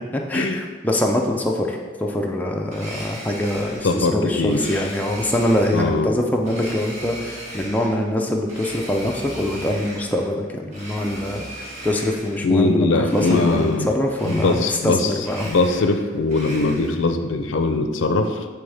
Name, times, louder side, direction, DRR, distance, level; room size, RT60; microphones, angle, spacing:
voice 1, 0.1-15.5, left 1 dB, 10° left, 0 dB, 0.4 m, -24 dB
Domestic sounds home sounds, 2.7-4.0 4.5-5.9 6.4-8.0 8.4-10.3 10.7-12.4 13.0-13.9 14.1-14.9 15.2-17.0, right 1 dB, 35° right, 1.7 m, -37 dB
voice 2, 3.8-4.6 5.7-6.1 12.4-13.9 14.2-15.1 15.4-18.5, left 3 dB, 70° left, 7 dB, 0.5 m, -21 dB
9.0 x 3.5 x 3.4 m, 1.5 s
head